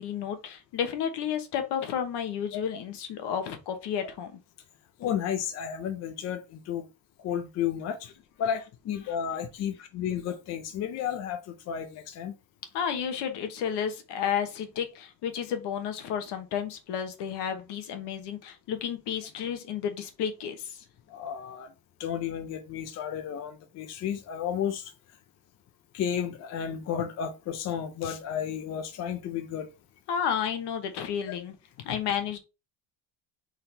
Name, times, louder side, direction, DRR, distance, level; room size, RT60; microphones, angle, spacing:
voice 1, 0.0-4.3 9.0-9.2 12.7-20.8 30.1-31.5 31.8-32.4, left 8 dB, 60° left, 1.1 m, -32 dB
voice 2, 5.0-6.8 7.2-8.1 8.4-11.4 11.7-12.3 21.1-21.7 22.0-24.9 25.9-29.7 31.3-31.4 31.9-32.0, left 9 dB, 35° left, 0.4 m, -32 dB
4.3 x 3.9 x 3.2 m
cardioid pair, 180°, 47 cm